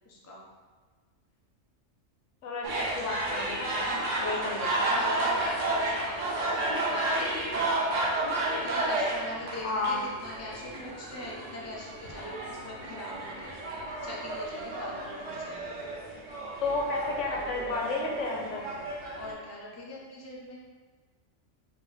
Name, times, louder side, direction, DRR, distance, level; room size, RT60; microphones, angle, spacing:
voice 1, 0.0-0.4 3.8-8.1 8.4-13.5 14.0-15.8 19.1-20.6, left 1 dB, 15° left, -4 dB, 0.6 m, -42 dB
voice 2, 2.4-3.9 4.2-4.9 9.6-10.0 16.6-18.7, left 3 dB, 75° left, 0 dB, 1.1 m, -32 dB
sound 1, 2.6-19.3, right 2 dB, 85° right, 1.3 m, -32 dB
4.5 x 3.5 x 3.3 m, 1.4 s
omnidirectional pair, 1.3 m